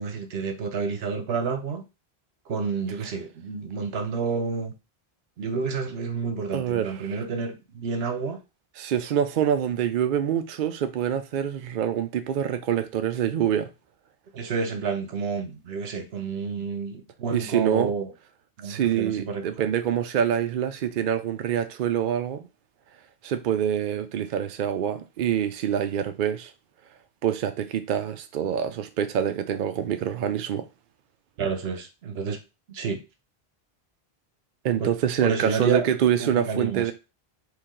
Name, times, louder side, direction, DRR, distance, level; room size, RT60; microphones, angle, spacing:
voice 1, 0.0-1.8 2.5-4.7 5.4-8.4 14.3-18.1 18.6-19.5 31.4-32.4 32.7-33.0 34.8-34.9 35.2-35.9 36.2-36.9, right 5 dB, 80° right, 1.0 m, -29 dB
voice 2, 6.5-7.1 8.8-13.7 17.3-17.9 18.6-22.5 23.2-26.5 27.2-30.7 34.6-36.9, right 9 dB, 60° right, 0.6 m, -26 dB
4.7 x 2.8 x 3.7 m
omnidirectional pair, 1.0 m